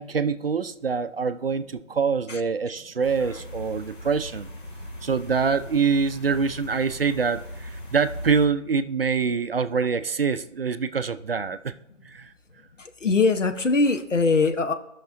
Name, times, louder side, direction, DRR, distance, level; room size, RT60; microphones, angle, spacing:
voice 1, 0.0-4.5 5.0-11.7 12.1-12.3, right 5 dB, 50° right, 0.5 m, -25 dB
sound 1, 3.0-8.5, equal, 45° left, 1.4 m, -38 dB
voice 2, 12.8-14.7, left 3 dB, 75° left, 1.0 m, -22 dB
15.0 x 6.0 x 2.5 m
figure-of-eight pair, 150°, 37 cm